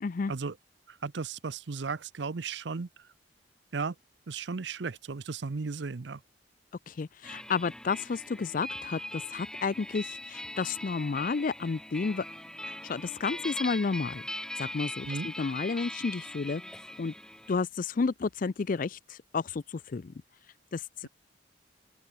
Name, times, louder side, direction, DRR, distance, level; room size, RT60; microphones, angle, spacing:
voice 1, 0.0-0.3 6.9-12.2 12.8-14.2 14.6-16.6 17.0-17.1 17.5-20.1 20.7-21.1, left 4 dB, 45° left, 0.4 m, -31 dB
voice 2, 0.9-2.9 3.7-3.9 4.3-6.2 15.1-15.3 21.0-21.1, right 4 dB, 70° right, 0.6 m, -35 dB
sound 1, 7.2-17.6, left 1 dB, 5° left, 1.4 m, -40 dB
open air
head